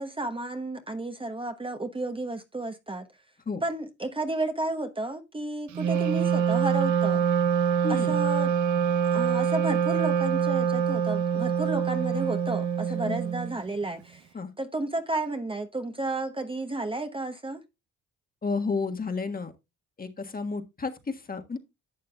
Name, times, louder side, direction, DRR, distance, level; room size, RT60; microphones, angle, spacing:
voice 1, 0.0-3.1 3.6-7.2 7.9-8.5 8.9-14.3 14.6-17.6, right 2 dB, 15° right, 1.0 m, -32 dB
Wind instrument woodwind instrument, 5.7-13.6, right 8 dB, 75° right, 0.8 m, -25 dB
voice 2, 7.8-8.1 13.0-13.2 14.3-14.5 18.4-19.5 20.0-21.6, left 4 dB, 30° left, 1.5 m, -31 dB
11.5 x 7.5 x 2.3 m
cardioid pair, 90°, 30 cm